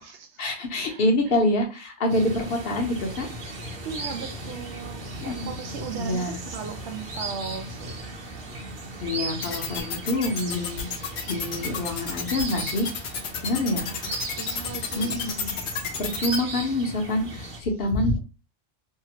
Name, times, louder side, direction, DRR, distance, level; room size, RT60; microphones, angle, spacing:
voice 1, 0.4-3.3 5.2-5.5 6.0-6.4 9.0-12.9 13.4-13.9 15.0-15.5 16.0-18.2, left 1 dB, 60° left, 0.9 m, -26 dB
sound 1, 2.1-17.6, right 2 dB, 50° right, 0.9 m, -37 dB
voice 2, 3.8-8.1 13.8-15.2, right 6 dB, 85° right, 0.9 m, -37 dB
sound 2, 9.4-16.4, left 7 dB, 80° left, 0.9 m, -31 dB
2.8 x 2.4 x 2.9 m
omnidirectional pair, 1.1 m